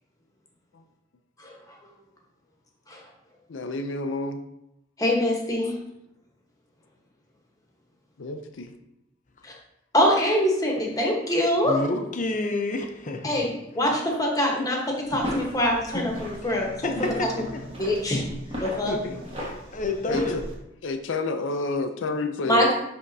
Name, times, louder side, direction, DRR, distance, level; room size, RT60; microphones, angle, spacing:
voice 1, 3.5-4.4 8.2-8.7 13.8-13.9 16.9-17.0 19.0-19.1 20.1-20.4 20.8-22.7, left 2 dB, 80° left, 7 dB, 0.5 m, -30 dB
voice 2, 5.0-5.7 9.4-9.5 9.9-11.7 13.2-13.5 13.7-14.8 15.1-16.7 17.3-17.4 17.8-18.2 18.6-19.0 22.4-22.7, left 1 dB, 20° left, 0 dB, 1.1 m, -23 dB
voice 3, 11.6-13.5 15.9-16.1 16.5-17.6 18.5-18.6 18.9-20.4, left 2 dB, 40° left, 4 dB, 0.7 m, -30 dB
sound 1, 15.0-20.5, equal, 30° right, 1.5 m, -37 dB
10.0 x 3.5 x 2.7 m, 0.85 s
head